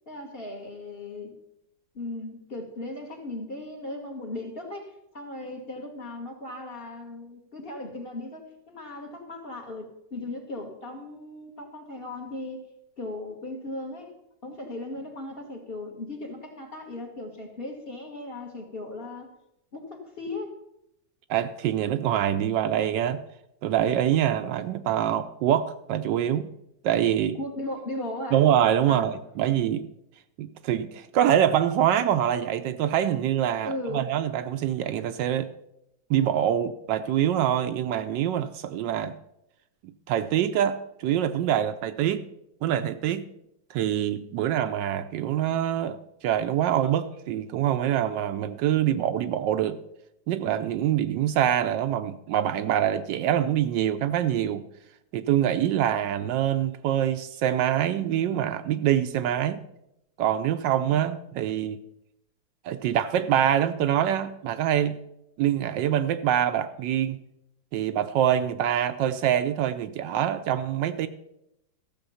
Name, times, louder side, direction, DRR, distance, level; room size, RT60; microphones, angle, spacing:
voice 1, 0.1-1.3 1.9-12.6 13.0-14.1 14.4-19.3 19.7-20.5 27.3-28.4 28.8-29.1 33.6-34.1, left 2 dB, 35° left, 1.5 m, -37 dB
voice 2, 21.3-23.2 23.6-26.5 26.8-27.4 28.3-29.9 30.4-35.5 36.1-39.2 40.1-42.3 42.6-43.3 43.7-49.8 50.3-54.6 55.1-59.6 60.2-61.8 62.6-65.0 65.4-67.2 67.7-71.1, right 10 dB, 75° right, 1.2 m, -25 dB
14.0 x 7.0 x 5.6 m
omnidirectional pair, 2.1 m